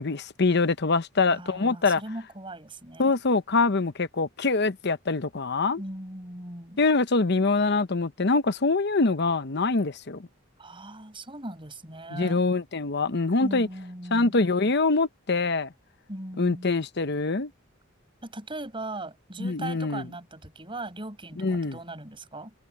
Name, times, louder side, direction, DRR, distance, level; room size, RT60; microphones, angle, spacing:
voice 1, 0.0-2.0 3.0-5.8 6.8-10.2 12.1-13.7 14.1-15.7 16.4-17.5 19.4-20.0 21.4-21.8, left 3 dB, 55° left, 0.9 m, -24 dB
voice 2, 1.2-3.1 5.8-6.8 10.6-12.4 13.4-14.4 16.1-16.7 18.2-22.5, right 1 dB, 25° right, 6.3 m, -39 dB
head